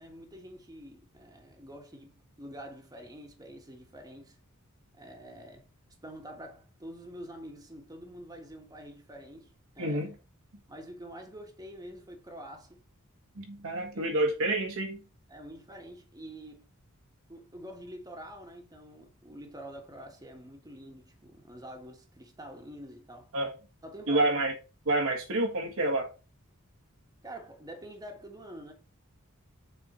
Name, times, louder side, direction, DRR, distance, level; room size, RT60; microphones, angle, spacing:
voice 1, 0.0-4.4 4.9-5.7 6.0-10.1 10.7-12.8 13.9-14.0 15.3-16.7 17.3-23.3 23.8-24.3 27.2-28.7, equal, 15° right, 1.5 m, -46 dB
voice 2, 9.8-10.1 13.3-15.0 23.3-23.5 24.1-24.5 24.8-26.1, right 2 dB, 70° right, 1.6 m, -28 dB
7.0 x 4.4 x 4.3 m
head